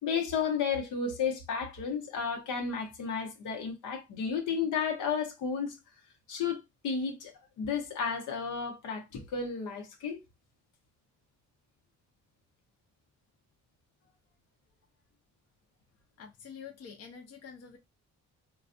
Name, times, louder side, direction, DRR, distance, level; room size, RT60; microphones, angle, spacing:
voice 1, 0.0-5.8 6.3-7.3 7.6-10.2, left 6 dB, 80° left, 1.0 m, -32 dB
voice 2, 16.2-17.8, left 6 dB, 55° left, 0.8 m, -47 dB
3.8 x 2.3 x 2.6 m
cardioid pair, 90°, 30 cm